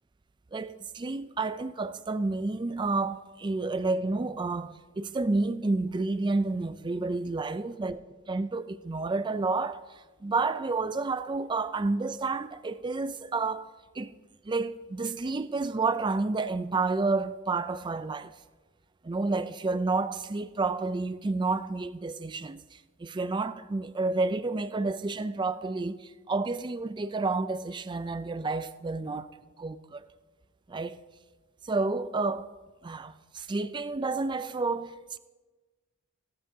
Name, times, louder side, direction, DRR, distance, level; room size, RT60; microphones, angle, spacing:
voice 1, 0.5-8.0 8.3-14.1 14.4-18.3 19.0-29.3 29.6-30.0 30.7-31.0 31.6-32.5 32.8-35.2, right 3 dB, 20° right, 0.4 m, -30 dB
16.0 x 13.0 x 2.8 m
head